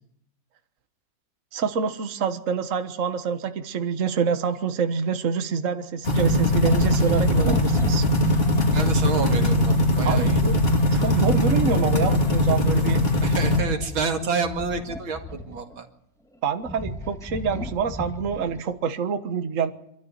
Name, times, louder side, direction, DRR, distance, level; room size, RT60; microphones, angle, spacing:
voice 1, 1.5-8.0 10.0-10.6 10.9-13.0 16.4-19.7, right 6 dB, 45° right, 8 dB, 1.6 m, -26 dB
sound 1, 6.0-13.6, left 1 dB, 30° left, 3.0 m, -21 dB
sound 2, 6.6-9.0 10.1-12.5 13.5-15.8 16.3-18.7, left 1 dB, ahead, 1.7 m, -33 dB
voice 2, 8.7-10.4 13.2-15.9, right 5 dB, 90° right, 4 dB, 2.9 m, -28 dB
26.0 x 13.5 x 9.7 m, 0.76 s
omnidirectional pair, 2.1 m